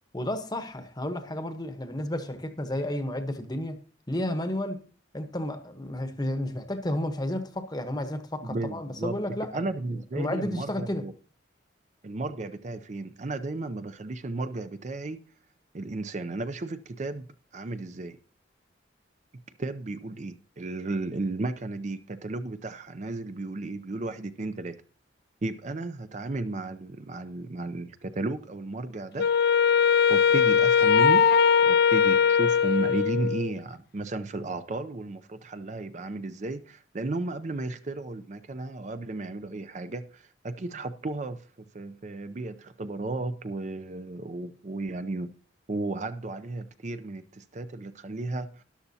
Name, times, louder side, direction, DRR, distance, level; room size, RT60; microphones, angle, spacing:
voice 1, 0.1-3.8 4.1-4.9 5.1-11.1, left 1 dB, 20° left, 0.9 m, -32 dB
voice 2, 8.4-9.1 9.5-11.1 12.0-15.2 15.7-17.2 17.5-18.2 19.6-24.8 25.4-29.3 30.1-31.2 31.7-40.0 40.4-41.4 41.7-45.3 45.7-48.5, right 2 dB, 40° right, 0.5 m, -34 dB
Wind instrument woodwind instrument, 29.2-33.6, left 7 dB, 60° left, 0.4 m, -20 dB
13.0 x 11.0 x 2.7 m
head